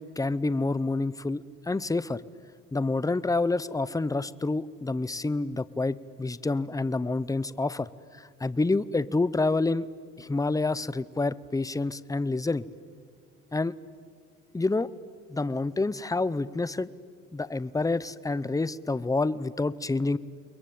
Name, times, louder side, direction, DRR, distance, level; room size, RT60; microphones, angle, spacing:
voice 1, 0.0-2.2 2.7-9.9 10.2-12.7 13.5-13.7 14.5-14.9 15.3-16.9 17.3-20.2, left 3 dB, 10° left, 17 dB, 0.7 m, -28 dB
29.5 x 22.0 x 8.7 m, 2.1 s
cardioid pair, 90°, 30 cm